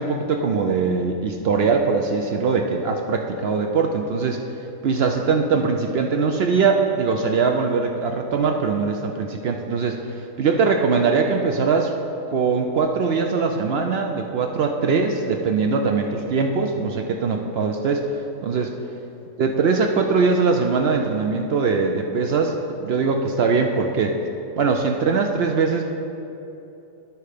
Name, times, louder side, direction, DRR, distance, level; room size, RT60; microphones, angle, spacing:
voice 1, 0.0-4.4 4.8-11.9 12.3-18.1 18.4-18.7 19.4-24.2 24.6-25.8, right 4 dB, 65° right, 3 dB, 0.6 m, -21 dB
11.0 x 4.6 x 4.9 m, 2.9 s
omnidirectional pair, 1.4 m